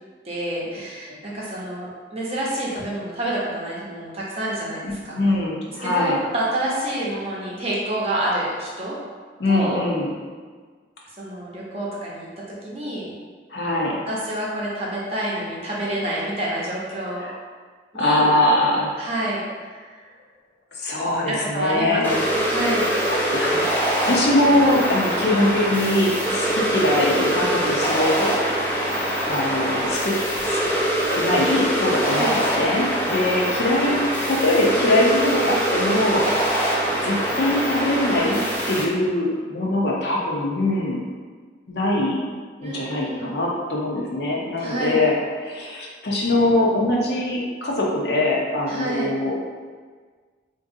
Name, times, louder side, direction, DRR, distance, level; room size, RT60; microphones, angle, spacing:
voice 1, 0.2-5.2 5.8-9.0 9.5-9.8 11.2-12.3 12.6-13.1 14.1-17.2 17.9-18.3 19.0-19.9 21.3-22.9 32.0-32.4 42.6-43.3 44.6-45.0 48.7-49.1, right 1 dB, 30° right, -5 dB, 0.6 m, -28 dB
voice 2, 4.8-6.2 9.4-10.1 13.5-14.0 17.2-17.3 17.9-18.9 20.8-22.2 23.3-23.7 24.1-28.4 29.2-30.1 30.5-30.6 31.1-36.2 37.0-38.4 38.7-41.0 41.7-42.2 42.6-45.1 45.4-49.3, left 1 dB, 60° left, -3 dB, 0.6 m, -22 dB
sound 1, 22.0-38.8, right 1 dB, 10° left, 0.4 m, -23 dB
3.8 x 2.6 x 2.6 m, 1.5 s
head